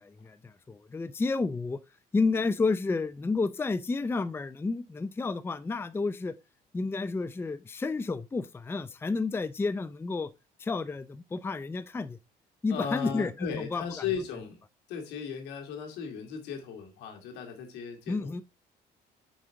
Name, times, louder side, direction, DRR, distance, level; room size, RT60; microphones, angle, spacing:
voice 1, 0.0-1.8 2.1-6.3 6.7-10.3 10.6-12.2 12.6-13.8 18.1-18.4, left 3 dB, 15° left, 0.5 m, -31 dB
voice 2, 12.7-14.6 14.9-18.4, left 7 dB, 85° left, 2.2 m, -36 dB
6.3 x 4.9 x 4.4 m
cardioid pair, 110°, 17 cm